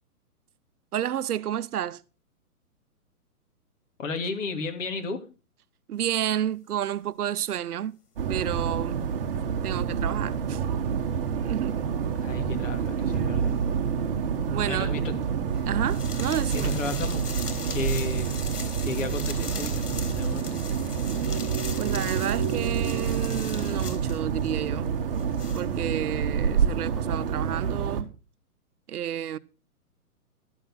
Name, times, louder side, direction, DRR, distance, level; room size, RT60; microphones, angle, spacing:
voice 1, 0.9-2.0 5.9-8.0 8.3-9.1 9.6-10.6 11.4-11.8 14.5-14.9 15.7-16.7 21.8-24.9 25.5-28.1 28.9-29.4, right 10 dB, 75° right, 0.8 m, -30 dB
voice 2, 4.0-5.2 12.2-13.5 14.6-15.1 16.5-17.3 17.7-18.4 18.8-20.6, left 3 dB, 55° left, 2.7 m, -33 dB
sound 1, 8.2-28.0, right 7 dB, 35° right, 1.4 m, -28 dB
sound 2, 13.1-13.2 14.4-14.6 15.5-24.6 24.9-25.7, left 4 dB, 85° left, 3.7 m, -39 dB
12.5 x 7.3 x 5.6 m
hypercardioid pair, 165°, 45 cm